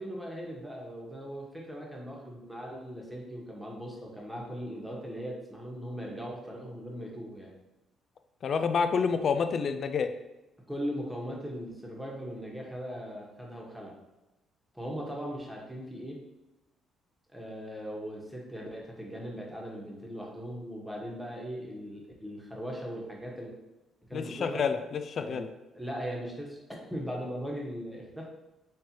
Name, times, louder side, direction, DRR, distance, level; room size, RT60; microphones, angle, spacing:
voice 1, 0.0-7.5 10.7-14.0 14.7-16.2 17.3-23.5 24.1-24.7 25.2-25.4 25.7-28.3, equal, 5° right, -2 dB, 1.2 m, -39 dB
voice 2, 8.4-10.1 24.1-25.5, left 6 dB, 55° left, 9 dB, 0.3 m, -28 dB
4.3 x 3.2 x 2.9 m, 1.0 s
supercardioid pair, 65°, 0 cm